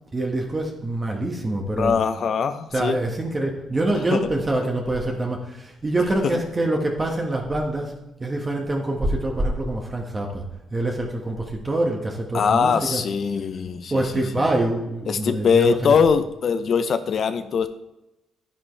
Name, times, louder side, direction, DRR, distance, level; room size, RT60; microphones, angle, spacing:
voice 1, 0.1-2.0 2.7-7.9 8.2-10.4 10.7-13.0 13.9-15.9, right 1 dB, 25° right, 0 dB, 1.6 m, -25 dB
voice 2, 1.8-3.0 4.1-4.2 12.3-14.5 15.1-17.7, left 6 dB, 55° left, 10 dB, 0.7 m, -22 dB
10.0 x 9.9 x 3.3 m, 0.90 s
cardioid pair, 90°, 0 cm